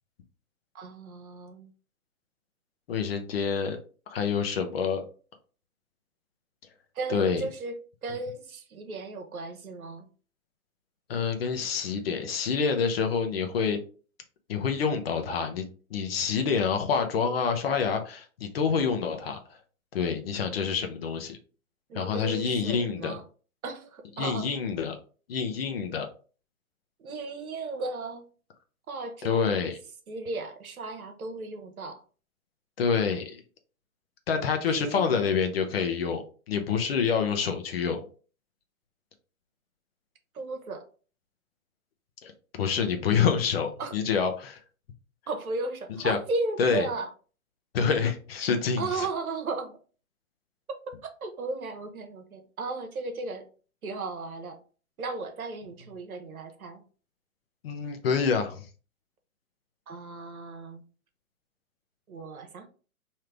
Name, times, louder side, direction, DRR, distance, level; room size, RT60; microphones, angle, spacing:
voice 1, 0.7-1.7 6.9-10.1 21.9-23.2 23.6-24.5 27.0-28.2 28.9-29.7 30.1-32.0 34.6-35.3 40.3-40.8 43.8-43.9 45.3-47.1 48.8-49.8 51.0-53.5 53.8-54.6 55.0-56.8 59.9-60.8 62.1-62.7, right 3 dB, 75° right, 6 dB, 1.0 m, -35 dB
voice 2, 2.9-3.8 4.1-5.0 7.1-7.5 11.1-13.8 14.5-19.4 19.9-21.4 21.9-23.1 24.2-25.0 25.3-26.1 29.2-29.8 32.8-33.4 34.3-38.1 42.2-42.3 42.6-44.6 46.0-46.2 46.6-46.9 47.7-49.1 57.6-58.7, left 6 dB, 45° left, 6 dB, 0.7 m, -27 dB
3.4 x 2.8 x 3.3 m, 0.39 s
hypercardioid pair, 135°, 43 cm